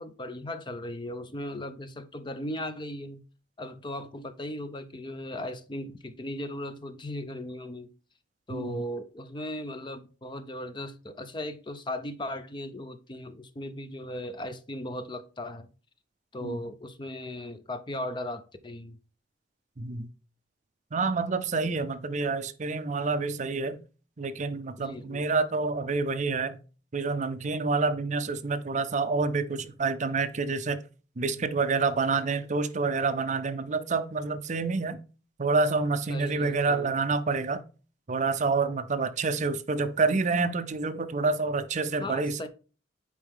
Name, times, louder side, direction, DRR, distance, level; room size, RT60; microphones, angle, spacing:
voice 1, 0.0-3.2 3.6-7.9 8.5-15.7 16.3-19.0 24.8-25.3 36.1-37.0 42.0-42.5, left 1 dB, 25° left, 0.6 m, -37 dB
voice 2, 8.5-8.8 16.4-16.6 19.8-20.1 20.9-23.8 24.2-26.6 26.9-30.8 31.2-35.0 35.4-37.6 38.1-42.5, right 4 dB, 40° right, 0.6 m, -28 dB
8.6 x 4.7 x 3.5 m
head